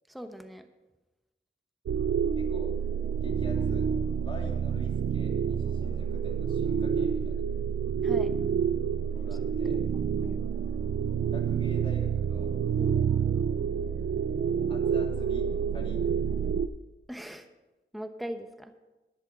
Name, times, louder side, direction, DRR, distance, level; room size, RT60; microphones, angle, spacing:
voice 1, 0.1-0.7 8.0-8.3 10.2-10.4 12.8-13.0 17.1-17.5 17.9-18.7, equal, ahead, 7 dB, 0.9 m, -40 dB
sound 1, 1.9-16.7, right 7 dB, 85° right, 0.4 m, -28 dB
voice 2, 2.3-2.8 3.2-3.9 4.2-7.4 9.1-9.8 11.3-12.6 14.7-16.0 16.4-16.5, left 1 dB, 25° left, -1 dB, 2.9 m, -44 dB
12.0 x 10.5 x 5.3 m, 1.1 s
wide cardioid pair, 75°, 21 cm